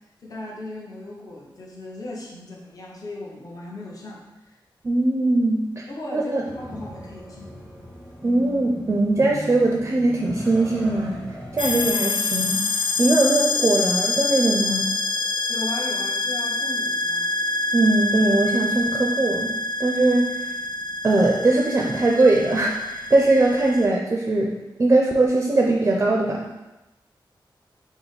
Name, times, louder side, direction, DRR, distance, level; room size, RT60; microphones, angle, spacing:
voice 1, 0.2-4.6 5.9-7.5 15.5-17.3 23.1-23.5, left 2 dB, 45° left, -4 dB, 0.8 m, -37 dB
voice 2, 4.8-5.8 6.1-6.4 8.2-11.2 11.5-12.6 13.0-15.0 17.7-19.5 19.8-20.5 21.0-26.5, right 2 dB, 30° right, 0 dB, 0.4 m, -20 dB
sound 1, 6.5-11.9, equal, 15° left, 0.9 m, -38 dB
sound 2, 11.6-23.9, left 2 dB, 80° left, 0.5 m, -26 dB
5.6 x 2.0 x 4.0 m, 1.0 s
wide cardioid pair, 135°, 8 cm